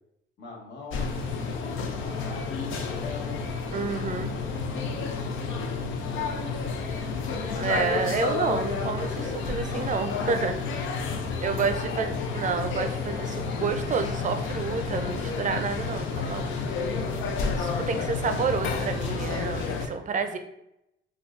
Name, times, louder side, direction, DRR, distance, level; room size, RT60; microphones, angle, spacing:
voice 1, 0.4-3.5 5.0-6.4 10.8-12.1 17.8-18.0, left 3 dB, 60° left, -2 dB, 1.1 m, -44 dB
sound 1, 0.9-19.9, left 4 dB, 80° left, 0.5 m, -30 dB
voice 2, 3.7-4.3 7.6-10.5 11.4-16.6 17.6-20.4, right 5 dB, 40° right, 7 dB, 0.4 m, -29 dB
4.4 x 2.3 x 2.5 m, 0.83 s
cardioid pair, 90°, 20 cm